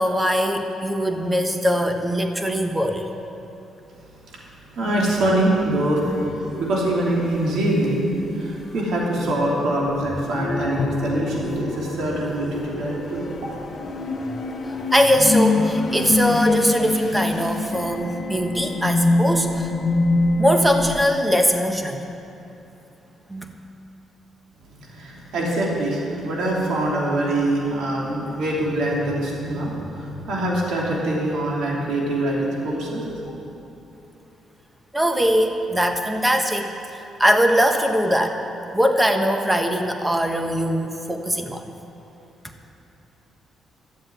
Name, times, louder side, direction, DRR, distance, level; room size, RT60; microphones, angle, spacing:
voice 1, 0.0-3.0 14.9-19.7 20.4-22.0 23.3-23.6 34.9-36.7 37.2-38.4 38.7-41.6, equal, 10° right, 4 dB, 1.3 m, -21 dB
voice 2, 4.7-6.0 6.6-13.3 24.7-33.1, right 1 dB, 75° right, -3 dB, 2.9 m, -24 dB
sound 1, 4.8-21.0, left 2 dB, 40° left, 1.4 m, -26 dB
Drum, 10.8-12.5, left 5 dB, 65° left, 0.6 m, -32 dB
13.5 x 7.5 x 9.3 m, 2.9 s
cardioid pair, 90°, 0 cm